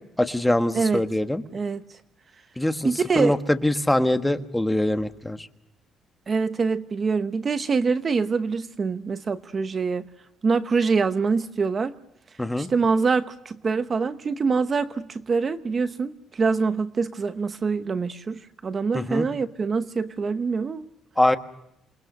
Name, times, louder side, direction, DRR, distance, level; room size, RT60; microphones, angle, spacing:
voice 1, 0.2-1.4 2.6-5.5 12.4-12.7 18.9-19.3 21.2-21.4, left 1 dB, 5° left, 8 dB, 1.4 m, -23 dB
voice 2, 1.5-1.8 2.8-3.3 6.3-10.1 10.4-11.9 12.6-20.8, right 4 dB, 30° right, 11 dB, 0.9 m, -25 dB
28.0 x 21.5 x 6.5 m, 0.83 s
cardioid pair, 135°, 0 cm